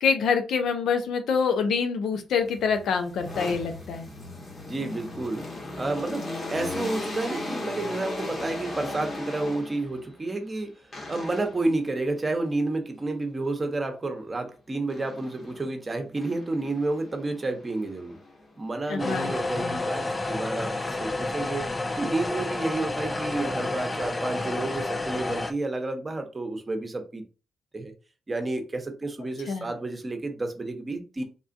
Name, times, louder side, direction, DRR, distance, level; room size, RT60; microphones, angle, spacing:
voice 1, 0.0-4.1 18.9-19.8 29.5-29.7, left 6 dB, 80° left, 0.5 m, -26 dB
sound 1, 2.4-10.0 10.9-11.7 14.9-15.7 16.2-18.6, left 2 dB, 45° left, 1.3 m, -37 dB
voice 2, 4.7-5.4 5.8-10.7 11.1-18.2 18.6-21.6 22.0-27.2 27.7-27.9 28.3-31.2, right 2 dB, 30° right, 0.9 m, -30 dB
sound 2, 19.0-25.5, left 2 dB, 25° left, 0.4 m, -30 dB
3.7 x 2.4 x 2.5 m
cardioid pair, 70°, 0 cm